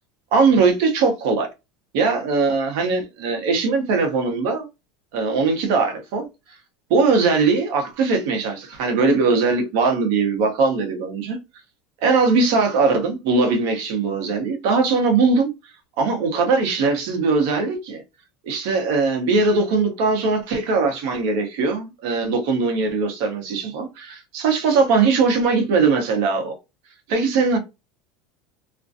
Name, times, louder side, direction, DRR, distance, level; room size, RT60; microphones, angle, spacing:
voice 1, 0.3-1.5 1.9-4.7 5.1-6.3 6.9-11.4 12.0-15.5 16.0-18.0 18.4-26.6 27.1-27.6, right 4 dB, 65° right, 0.8 m, -20 dB
2.5 x 2.2 x 2.5 m
supercardioid pair, 150°, 0 cm